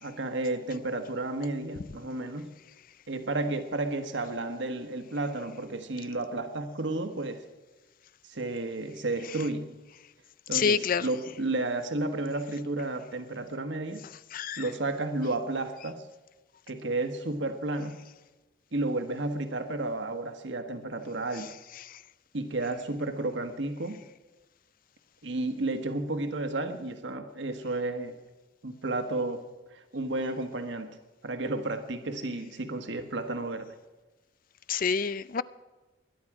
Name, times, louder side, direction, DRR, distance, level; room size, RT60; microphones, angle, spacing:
voice 1, 0.0-2.5 3.1-7.4 8.2-9.7 10.5-14.0 14.6-16.1 16.7-18.0 18.7-21.5 22.3-24.0 25.2-28.2 28.6-29.4 29.7-30.9 31.2-33.7, right 2 dB, 70° right, 1.4 m, -32 dB
voice 2, 10.5-11.1 14.3-14.6 34.7-35.4, left 6 dB, 45° left, 0.5 m, -27 dB
21.0 x 10.5 x 4.9 m
head